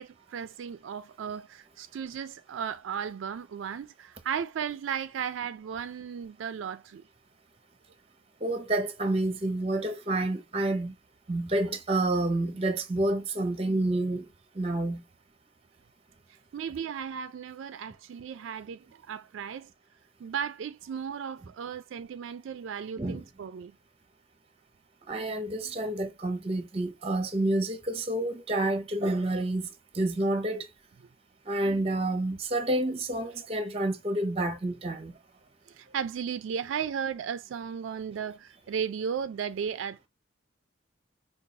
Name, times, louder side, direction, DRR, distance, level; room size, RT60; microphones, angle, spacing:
voice 1, 0.0-7.0 11.5-11.6 16.5-19.7 20.2-23.7 25.6-25.8 35.7-40.1, right 7 dB, 70° right, 0.3 m, -35 dB
voice 2, 8.4-10.9 11.3-14.3 14.6-15.0 23.0-23.2 25.1-29.7 29.9-30.7 31.5-35.1, right 1 dB, 30° right, 0.6 m, -29 dB
5.3 x 2.3 x 2.7 m
head